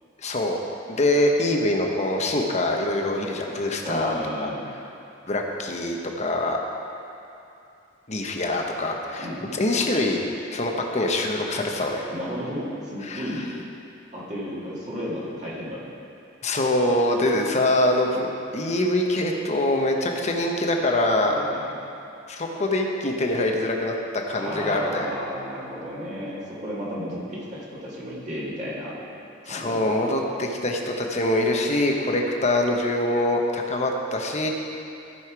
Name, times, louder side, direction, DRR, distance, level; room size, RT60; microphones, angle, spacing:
voice 1, 0.2-0.6 0.9-4.5 5.3-6.6 8.1-9.3 9.5-10.2 10.5-12.1 13.0-13.3 16.4-21.4 22.3-23.9 24.3-25.2 29.5-34.5, left 1 dB, 35° left, 1 dB, 1.0 m, -24 dB
voice 2, 3.8-4.6 9.2-9.8 12.1-13.6 14.1-15.9 21.3-21.7 24.4-29.0 29.4-30.3, equal, 40° right, -7 dB, 2.1 m, -33 dB
14.5 x 5.6 x 4.7 m, 2.7 s
head